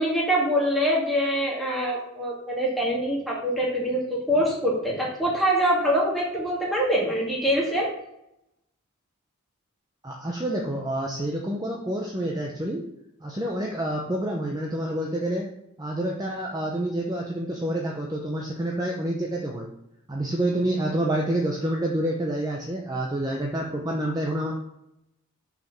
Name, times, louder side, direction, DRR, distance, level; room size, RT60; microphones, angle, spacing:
voice 1, 0.0-7.9, equal, ahead, -5 dB, 2.1 m, -24 dB
voice 2, 10.0-12.8 13.2-15.5 15.8-19.7 20.1-24.5, right 1 dB, 15° right, -1 dB, 0.7 m, -28 dB
6.3 x 5.0 x 5.9 m, 0.81 s
head